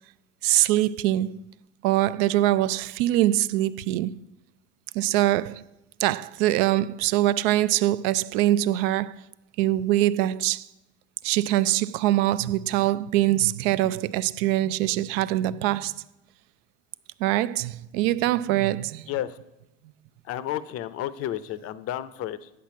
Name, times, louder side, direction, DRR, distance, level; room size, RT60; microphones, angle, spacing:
voice 1, 0.4-1.4 1.8-4.2 4.9-5.6 6.0-9.2 9.6-10.7 11.2-15.9 17.2-19.1, right 14 dB, 65° right, 0.4 m, -23 dB
voice 2, 19.1-19.4 20.2-22.5, left 12 dB, 45° left, 0.6 m, -31 dB
8.3 x 6.0 x 5.9 m
hypercardioid pair, 80°, 32 cm